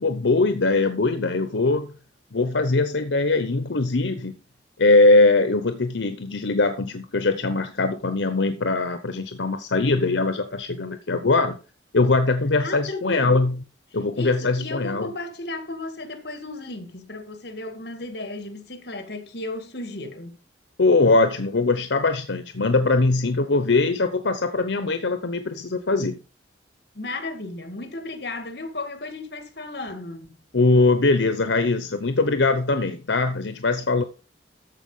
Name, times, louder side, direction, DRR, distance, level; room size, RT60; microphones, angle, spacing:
voice 1, 0.0-1.9 2.3-4.4 4.8-11.6 11.9-13.6 13.9-15.1 20.8-26.2 30.5-34.0, left 3 dB, 85° left, 0.9 m, -21 dB
voice 2, 12.6-13.4 14.1-20.4 26.9-30.4, left 2 dB, 60° left, 1.9 m, -34 dB
14.0 x 4.9 x 5.4 m
head